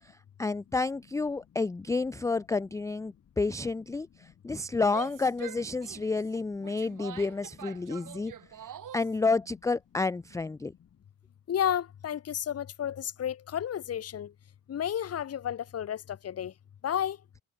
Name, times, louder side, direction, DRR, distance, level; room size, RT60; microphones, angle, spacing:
voice 1, 0.4-8.3 8.9-10.7, left 3 dB, 10° left, 0.3 m, -30 dB
Female speech woman speaking / Yell, 4.8-9.2, right 10 dB, 55° right, 5.5 m, -45 dB
voice 2, 11.5-14.3 14.7-16.5 16.8-17.2, left 10 dB, 40° left, 1.3 m, -32 dB
cardioid pair, 145°, 38 cm